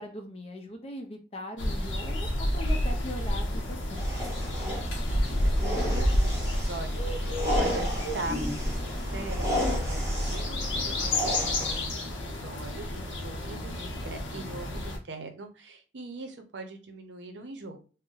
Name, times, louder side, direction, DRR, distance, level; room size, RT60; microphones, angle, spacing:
voice 1, 0.0-4.0, left 1 dB, 35° left, 4 dB, 0.5 m, -40 dB
sound 1, 1.6-15.0, left 1 dB, 85° left, 0.6 m, -30 dB
sound 2, 3.9-11.9, equal, 15° right, 1.0 m, -32 dB
voice 2, 5.1-17.8, right 2 dB, 75° right, 6 dB, 0.6 m, -42 dB
2.6 x 2.1 x 3.8 m, 0.36 s
head